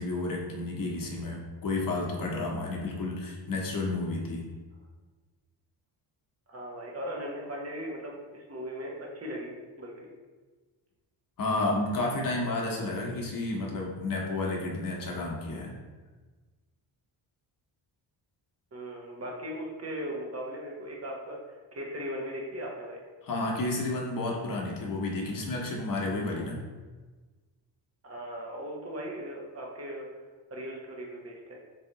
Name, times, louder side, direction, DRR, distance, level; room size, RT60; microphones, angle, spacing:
voice 1, 0.0-4.4 11.4-15.7 23.2-26.6, left 2 dB, 45° left, -1 dB, 1.0 m, -31 dB
voice 2, 6.5-10.1 18.7-23.0 28.0-30.1 30.5-31.6, equal, 30° right, -1 dB, 0.9 m, -38 dB
3.2 x 2.8 x 3.8 m, 1.3 s
cardioid pair, 75°, 47 cm